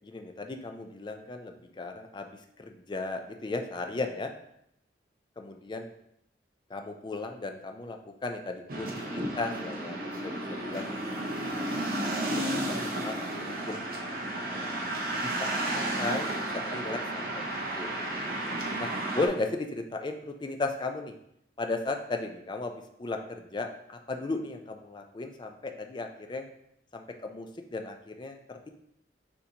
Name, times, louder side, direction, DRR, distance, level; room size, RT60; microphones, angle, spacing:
voice 1, 0.1-4.3 5.5-5.9 6.7-10.0 10.2-10.9 11.5-11.8 12.2-12.8 13.0-13.9 14.5-14.8 15.2-15.4 15.7-18.3 18.8-21.1 21.6-26.5 26.9-28.7, left 3 dB, 25° left, 5 dB, 0.3 m, -36 dB
sound 1, 8.7-19.3, right 1 dB, 50° right, 0.7 m, -32 dB
6.4 x 2.7 x 2.8 m, 0.75 s
head